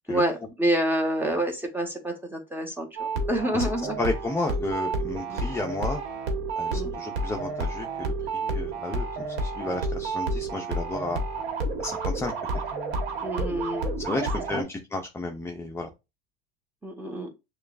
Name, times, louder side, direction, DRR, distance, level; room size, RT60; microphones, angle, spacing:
voice 1, 0.1-4.0 5.3-5.5 6.7-6.9 13.2-14.3 14.5-14.6 16.8-17.3, right 1 dB, 5° right, 3 dB, 1.1 m, -28 dB
sound 1, 3.0-14.6, right 2 dB, 90° right, 1.3 m, -30 dB
voice 2, 4.0-6.0 6.6-11.2 11.8-12.3 14.0-15.9, left 2 dB, 10° left, 3 dB, 0.5 m, -32 dB
6.4 x 2.3 x 2.5 m, 0.26 s
supercardioid pair, 105°, 30 cm